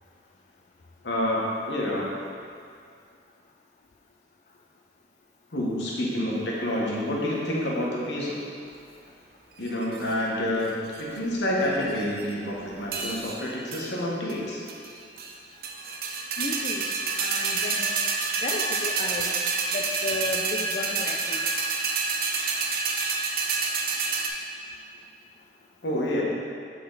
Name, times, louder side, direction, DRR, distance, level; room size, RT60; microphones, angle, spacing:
voice 1, 1.0-2.0 5.5-8.4 9.6-14.6 25.8-26.2, left 1 dB, 85° left, -4 dB, 1.3 m, -28 dB
sound 1, 9.7-10.1 10.7-11.2 11.6-12.3 12.9-13.4 13.7-13.9 14.3-14.4 14.7-15.3 15.6-24.3, right 4 dB, 55° right, 0.5 m, -28 dB
voice 2, 16.4-16.9 17.2-18.0 18.4-19.3 19.7-21.5, left 3 dB, 40° left, -1 dB, 0.3 m, -33 dB
7.7 x 3.8 x 3.9 m, 2.4 s
head